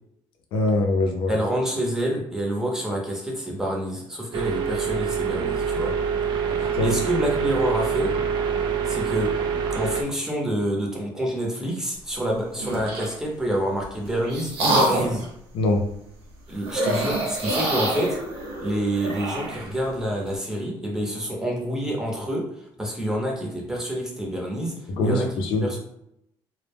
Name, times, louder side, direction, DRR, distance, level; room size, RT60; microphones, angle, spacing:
voice 1, 0.5-1.3 6.7-6.9 15.5-15.9 24.9-25.7, left 2 dB, 70° left, 3 dB, 0.5 m, -23 dB
voice 2, 1.3-6.0 6.8-8.2 8.8-9.4 9.7-15.3 16.5-18.2 18.6-25.3 25.6-25.8, equal, 5° right, -1 dB, 0.7 m, -27 dB
sound 1, 4.3-10.0, right 6 dB, 55° right, 0.4 m, -25 dB
sound 2, 12.5-13.2 13.8-15.3 16.6-19.7, right 1 dB, 80° right, 0.8 m, -26 dB
2.1 x 2.0 x 3.3 m, 0.76 s
cardioid pair, 105°, 9 cm